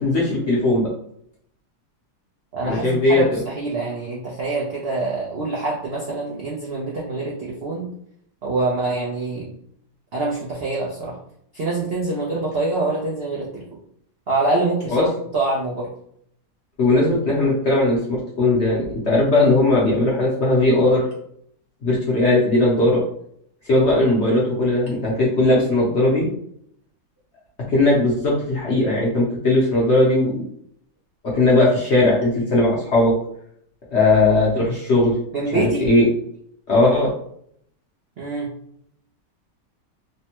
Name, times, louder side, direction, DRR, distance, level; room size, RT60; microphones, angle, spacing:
voice 1, 0.0-0.9 2.6-3.4 14.9-15.0 16.8-21.1 21.8-23.0 23.7-26.3 27.7-30.4 31.2-33.1 33.9-35.1 35.5-36.1 36.7-37.1, left 2 dB, 55° left, -5 dB, 0.8 m, -18 dB
voice 2, 2.5-7.9 8.4-9.5 10.1-11.2 11.5-13.6 14.3-15.1 15.3-15.9 35.3-35.9 38.2-38.5, right 2 dB, 70° right, -5 dB, 0.6 m, -25 dB
3.3 x 2.1 x 2.9 m, 0.67 s
omnidirectional pair, 1.9 m